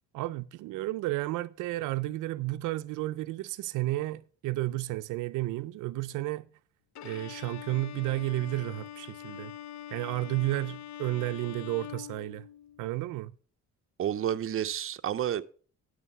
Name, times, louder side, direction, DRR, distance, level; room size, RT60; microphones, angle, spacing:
voice 1, 0.1-6.5 7.0-9.5 9.9-12.5 12.8-13.3, right 18 dB, 90° right, 0.4 m, -32 dB
Bowed string instrument, 6.9-12.9, left 11 dB, 65° left, 0.6 m, -44 dB
voice 2, 14.0-15.4, right 10 dB, 45° right, 0.7 m, -30 dB
11.0 x 6.4 x 5.4 m
cardioid pair, 90°, 30 cm